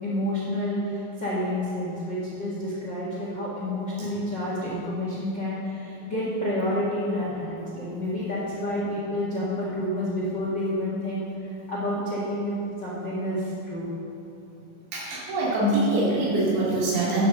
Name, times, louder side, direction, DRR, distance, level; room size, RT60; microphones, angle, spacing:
voice 1, 0.0-11.3 11.7-13.9, left 1 dB, 45° left, -7 dB, 1.4 m, -29 dB
voice 2, 14.9-17.3, right 2 dB, 70° right, -6 dB, 4.7 m, -24 dB
11.0 x 7.2 x 7.0 m, 2.9 s
omnidirectional pair, 5.2 m